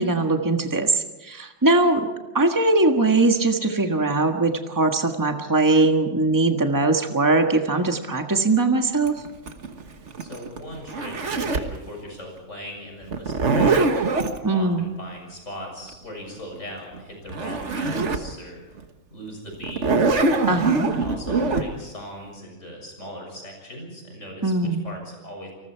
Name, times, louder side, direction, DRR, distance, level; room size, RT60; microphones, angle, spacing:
voice 1, 0.0-2.1 2.3-9.1 14.4-14.9 20.5-20.9 24.4-24.8, right 2 dB, 15° right, 4 dB, 1.6 m, -21 dB
Zipper (clothing), 9.1-11.8 13.1-14.4 17.0-17.1 17.3-18.3 18.8-18.9 19.6-21.6, right 3 dB, 65° right, 1.7 m, -23 dB
voice 2, 10.2-13.8 14.5-18.6 19.1-19.9 20.9-25.5, equal, 75° left, 1 dB, 7.3 m, -39 dB
29.0 x 19.5 x 4.7 m, 1.1 s
omnidirectional pair, 1.3 m